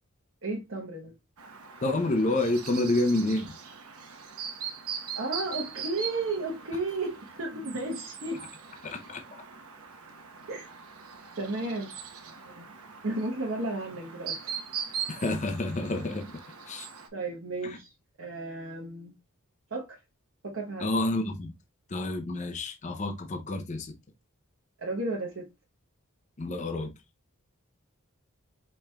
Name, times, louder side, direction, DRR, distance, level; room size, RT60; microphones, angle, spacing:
voice 1, 0.4-1.1 5.2-8.4 10.5-10.7 11.4-11.9 12.4-12.7 13.0-14.5 17.1-17.9 18.2-19.1 19.7-20.0 20.4-20.9 24.8-25.5, right 2 dB, 60° right, 1.0 m, -33 dB
Chirp tweet, 1.4-17.1, right 7 dB, 90° right, 1.0 m, -41 dB
voice 2, 1.8-3.6 8.8-9.2 15.1-16.4 16.6-16.9 17.6-17.8 20.8-21.5 21.9-23.9 26.4-26.9, left 2 dB, 35° left, 0.5 m, -29 dB
4.9 x 4.3 x 2.2 m
head